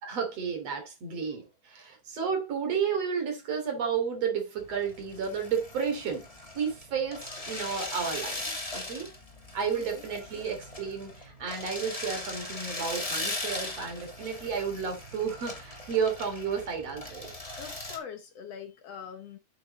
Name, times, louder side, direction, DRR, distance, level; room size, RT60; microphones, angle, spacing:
voice 1, 0.0-6.3 6.5-9.1 9.5-17.3, right 6 dB, 55° right, 4.0 m, -32 dB
sound 1, 4.6-18.0, left 2 dB, 15° left, 1.8 m, -39 dB
voice 2, 9.7-10.0 17.6-19.4, left 7 dB, 65° left, 1.9 m, -43 dB
8.5 x 6.9 x 4.1 m
omnidirectional pair, 3.4 m